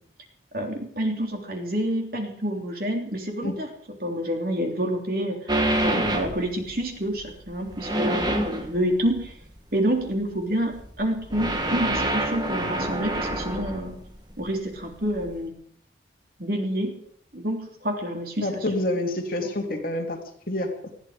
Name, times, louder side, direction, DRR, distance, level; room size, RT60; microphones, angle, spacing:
voice 1, 0.5-3.7 4.0-5.5 5.8-9.3 9.7-14.0 14.4-15.5 16.4-17.0 17.3-18.6 19.4-19.5, right 1 dB, 50° right, 2 dB, 3.4 m, -28 dB
sound 1, 5.5-6.8 7.2-9.5 10.0-10.4 10.7-14.5 14.7-15.3, right 1 dB, 20° right, 1.8 m, -27 dB
voice 2, 18.4-20.2 20.5-20.7, left 1 dB, 50° left, 2 dB, 2.8 m, -27 dB
20.0 x 14.0 x 5.1 m, 0.62 s
head